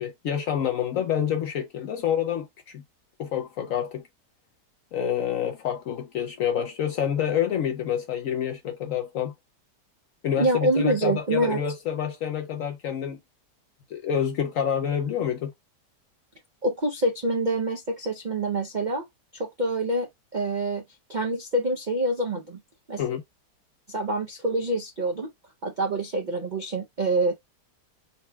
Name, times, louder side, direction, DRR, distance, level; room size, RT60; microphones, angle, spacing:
voice 1, 0.0-2.8 3.2-4.0 4.9-9.3 10.2-13.2 13.9-15.5 23.0-23.2, left 9 dB, 65° left, 0.8 m, -28 dB
voice 2, 10.4-11.6 16.6-19.0 19.3-20.1 20.3-20.8 21.1-22.6 22.9-23.0 23.9-25.3 25.6-27.4, right 1 dB, 80° right, 0.4 m, -26 dB
4.1 x 2.2 x 4.3 m
omnidirectional pair, 1.8 m